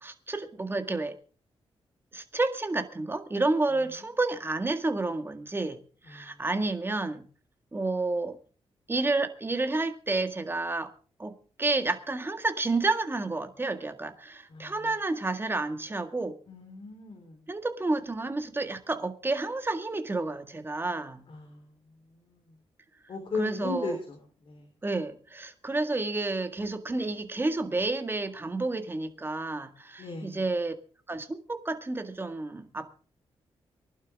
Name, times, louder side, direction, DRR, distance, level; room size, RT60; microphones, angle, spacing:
voice 1, 0.0-1.1 2.1-5.8 6.1-7.2 7.7-8.4 8.9-10.9 11.2-16.3 17.5-21.2 23.3-24.0 24.8-30.7 31.1-32.9, right 2 dB, 20° right, 7 dB, 1.8 m, -30 dB
voice 2, 16.5-17.4 21.3-21.7 23.1-24.2 24.5-24.7 30.0-30.4, left 4 dB, 60° left, 4 dB, 3.8 m, -36 dB
23.5 x 11.5 x 3.6 m, 0.40 s
cardioid pair, 105°, 10 cm